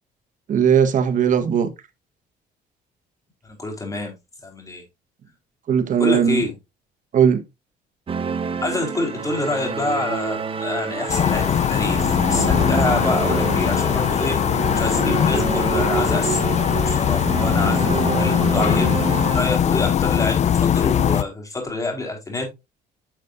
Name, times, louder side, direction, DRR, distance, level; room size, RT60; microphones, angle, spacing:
voice 1, 0.5-1.7 5.7-6.4 7.1-7.4, right 8 dB, 50° right, 1.3 m, -18 dB
voice 2, 3.4-4.1 4.4-4.8 6.0-6.5 8.6-14.4 14.7-22.5, left 2 dB, 20° left, 4.3 m, -27 dB
sound 1, 8.1-19.4, right 5 dB, 30° right, 1.0 m, -27 dB
sound 2, 11.1-21.2, left 9 dB, 45° left, 0.6 m, -20 dB
10.5 x 6.5 x 2.6 m
cardioid pair, 110°, 17 cm